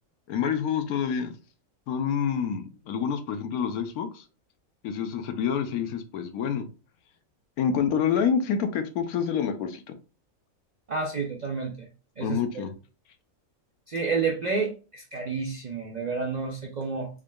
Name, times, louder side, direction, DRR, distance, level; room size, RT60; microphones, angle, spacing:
voice 1, 0.3-1.3 1.9-4.2 4.8-6.7 7.6-9.8 12.2-12.7, left 7 dB, 90° left, 1.2 m, -27 dB
voice 2, 10.9-11.9 12.2-12.4 13.9-17.1, right 4 dB, 70° right, 0.4 m, -30 dB
3.6 x 3.6 x 2.2 m
omnidirectional pair, 1.5 m